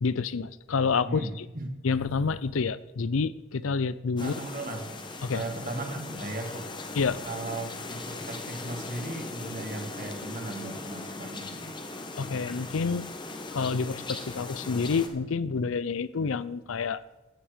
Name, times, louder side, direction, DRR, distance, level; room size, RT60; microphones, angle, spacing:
voice 1, 0.0-1.5 1.8-4.3 5.2-5.4 7.0-7.2 12.2-13.0 13.5-17.0, left 5 dB, 75° left, 17 dB, 0.5 m, -28 dB
voice 2, 1.0-1.7 4.2-4.8 5.3-6.7 7.3-11.8, right 2 dB, 40° right, 3 dB, 1.9 m, -37 dB
sound 1, 4.2-15.1, left 2 dB, 20° left, 1.0 m, -39 dB
15.5 x 8.8 x 5.1 m, 1.1 s
head